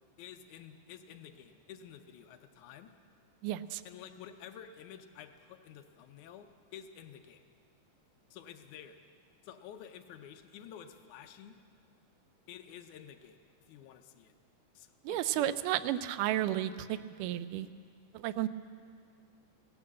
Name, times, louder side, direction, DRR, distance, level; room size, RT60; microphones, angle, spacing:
voice 1, 0.2-2.9 3.9-7.5 8.3-9.0 9.4-11.6 12.5-13.4 13.7-14.3 14.8-15.5, left 9 dB, 75° left, 7 dB, 2.1 m, -50 dB
voice 2, 3.4-3.8 15.0-17.7 18.1-18.5, right 13 dB, 90° right, 14 dB, 2.1 m, -32 dB
16.0 x 12.0 x 7.4 m, 2.2 s
omnidirectional pair, 3.6 m